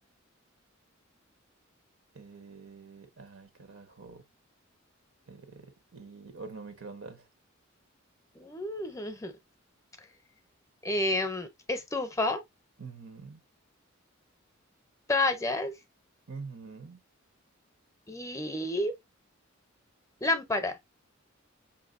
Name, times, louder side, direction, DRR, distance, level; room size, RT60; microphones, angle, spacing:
voice 1, 2.1-4.2 5.3-7.3 12.8-13.4 16.3-17.0, right 4 dB, 85° right, 1.0 m, -46 dB
voice 2, 8.4-9.3 10.8-12.4 15.1-15.7 18.1-18.9 20.2-20.8, left 2 dB, 15° left, 0.6 m, -30 dB
5.7 x 2.6 x 2.4 m
head